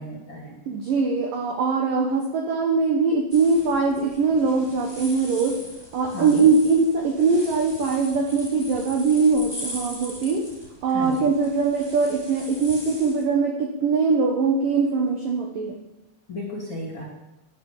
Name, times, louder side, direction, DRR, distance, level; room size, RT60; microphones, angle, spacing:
voice 1, 0.0-0.6 6.1-6.5 10.9-11.3 16.3-17.0, left 1 dB, 35° left, -1 dB, 2.3 m, -34 dB
voice 2, 0.7-5.6 5.9-10.4 10.8-15.8, right 4 dB, 75° right, 3 dB, 2.0 m, -22 dB
sound 1, 3.3-13.2, equal, 10° right, 1.3 m, -40 dB
12.5 x 11.0 x 7.3 m, 0.98 s
omnidirectional pair, 5.9 m